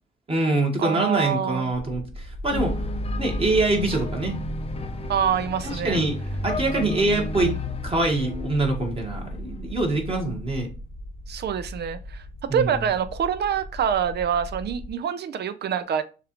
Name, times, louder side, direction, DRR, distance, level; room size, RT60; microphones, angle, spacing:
voice 1, 0.3-2.7 3.2-4.4 5.8-6.2 6.4-7.5 7.8-10.7 12.5-12.8, right 2 dB, 30° right, 1.5 m, -24 dB
voice 2, 0.8-1.7 5.1-6.0 11.3-12.2 12.5-16.0, right 8 dB, 55° right, 0.6 m, -26 dB
sound 1, 1.7-14.9, equal, 90° left, 1.2 m, -38 dB
sound 2, 2.5-9.8, left 2 dB, 30° left, 0.6 m, -32 dB
6.6 x 2.5 x 3.0 m
cardioid pair, 90°, 20 cm